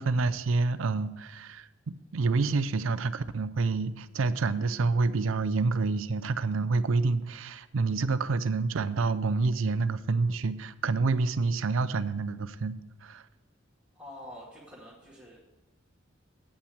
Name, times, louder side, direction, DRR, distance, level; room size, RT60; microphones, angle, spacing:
voice 1, 0.0-1.7 2.1-12.7 13.0-13.2, right 3 dB, 80° right, 13 dB, 0.5 m, -28 dB
voice 2, 14.0-15.5, left 1 dB, 5° right, -9 dB, 2.1 m, -47 dB
8.6 x 5.8 x 7.8 m, 1.0 s
head